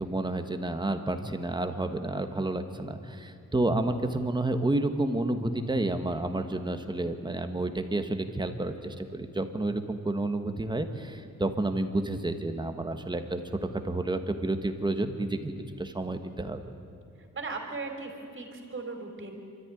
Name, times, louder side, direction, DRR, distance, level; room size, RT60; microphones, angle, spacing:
voice 1, 0.0-13.4 13.8-16.6, right 2 dB, 15° right, 7 dB, 1.4 m, -30 dB
voice 2, 17.3-19.3, right 3 dB, 40° right, 4 dB, 3.6 m, -37 dB
27.0 x 13.5 x 9.8 m, 2.5 s
wide cardioid pair, 145°, 30 cm